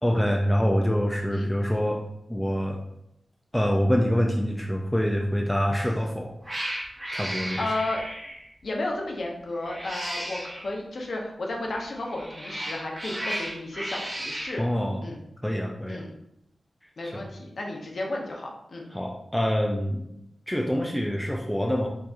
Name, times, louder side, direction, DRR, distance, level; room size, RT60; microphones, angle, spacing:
voice 1, 0.0-2.0 2.3-2.8 3.5-6.3 7.1-7.6 14.6-15.0 15.4-16.0 17.0-17.3 18.9-20.0 20.5-21.9, equal, 5° left, 0 dB, 0.3 m, -25 dB
Cat, 5.7-6.0 6.4-8.5 9.6-10.7 12.0-14.6, right 1 dB, 20° right, 0.9 m, -34 dB
voice 2, 7.6-8.0 8.6-14.6 15.0-15.2 15.9-16.1 17.0-18.8, left 2 dB, 55° left, 0 dB, 0.7 m, -33 dB
4.5 x 2.8 x 2.4 m, 0.80 s
wide cardioid pair, 140°, 0 cm